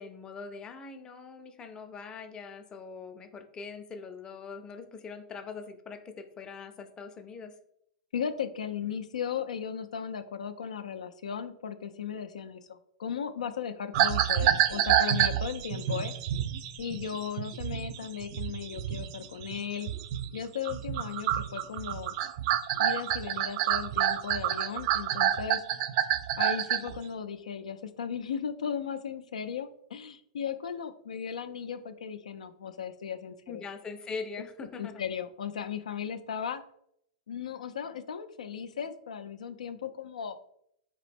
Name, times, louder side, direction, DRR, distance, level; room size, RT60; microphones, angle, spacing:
voice 1, 0.0-7.5 33.5-34.9, left 5 dB, 20° left, 6 dB, 0.5 m, -42 dB
voice 2, 8.1-16.1 16.8-19.9 20.3-22.2 22.8-25.6 26.4-33.6 34.8-36.6 37.3-40.4, left 7 dB, 90° left, 9 dB, 0.3 m, -36 dB
sound 1, 13.9-20.4 20.6-27.0, right 10 dB, 50° right, 0.3 m, -28 dB
4.0 x 2.9 x 3.4 m, 0.72 s
hypercardioid pair, 125°, 4 cm